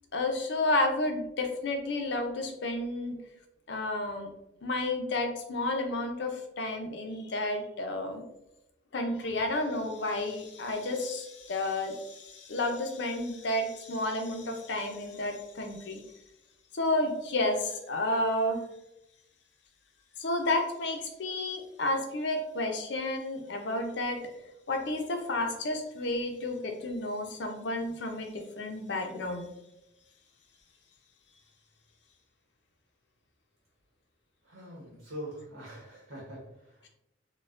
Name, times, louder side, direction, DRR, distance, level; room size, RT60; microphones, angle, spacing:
voice 1, 0.1-3.2 3.7-4.3 4.6-8.2 8.9-16.0 16.7-18.6 20.2-24.2 24.7-29.5, left 2 dB, 60° left, 4 dB, 0.5 m, -31 dB
voice 2, 34.5-36.4, equal, 75° right, -5 dB, 1.1 m, -43 dB
4.1 x 2.2 x 2.5 m, 0.88 s
head